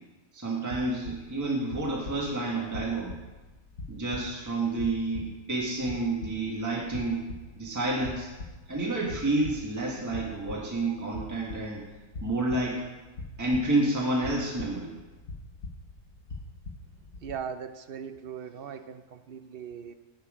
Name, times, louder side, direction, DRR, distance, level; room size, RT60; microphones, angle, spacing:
voice 1, 0.3-3.1 3.9-7.2 7.6-8.3 8.7-11.8 12.2-12.8 13.4-14.9, right 2 dB, 15° right, -3 dB, 1.5 m, -29 dB
sound 1, 0.7-17.3, left 3 dB, 70° left, 1.4 m, -43 dB
voice 2, 17.2-19.9, right 7 dB, 60° right, 10 dB, 0.6 m, -39 dB
11.0 x 7.9 x 5.0 m, 1.2 s
omnidirectional pair, 1.4 m